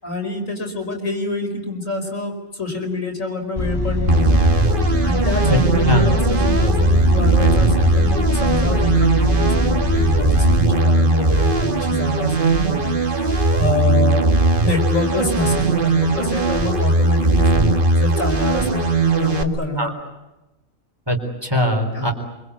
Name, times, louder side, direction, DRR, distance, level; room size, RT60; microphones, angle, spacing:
voice 1, 0.0-4.5 5.0-19.9 21.9-22.1, left 2 dB, 85° left, 2 dB, 5.7 m, -26 dB
sound 1, 3.6-10.6, left 1 dB, 15° left, 1.9 m, -21 dB
sound 2, 4.1-19.4, right 2 dB, 40° right, 1.9 m, -18 dB
voice 2, 21.1-22.1, left 1 dB, 20° right, 3 dB, 4.2 m, -20 dB
27.0 x 25.0 x 8.5 m, 1.0 s
omnidirectional pair, 1.3 m